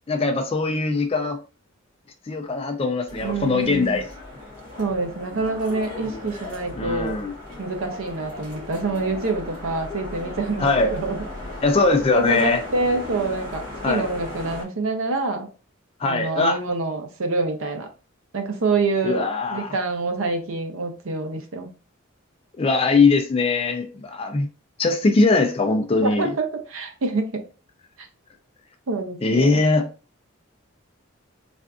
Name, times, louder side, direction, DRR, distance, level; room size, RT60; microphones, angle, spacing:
voice 1, 0.1-1.4 2.3-4.1 6.1-6.2 6.8-7.3 10.6-10.9 11.6-12.6 13.8-14.0 16.0-16.6 19.0-19.8 22.6-24.5 24.8-26.3 29.2-29.9, left 3 dB, 30° left, 0.4 m, -21 dB
sound 1, 3.1-14.6, left 2 dB, 40° right, 1.2 m, -37 dB
voice 2, 3.2-4.0 4.8-7.2 7.6-11.2 12.1-15.5 16.0-17.9 18.3-21.7 26.0-27.4 28.9-29.6, right 3 dB, 85° right, 0.7 m, -26 dB
3.4 x 2.5 x 2.4 m
head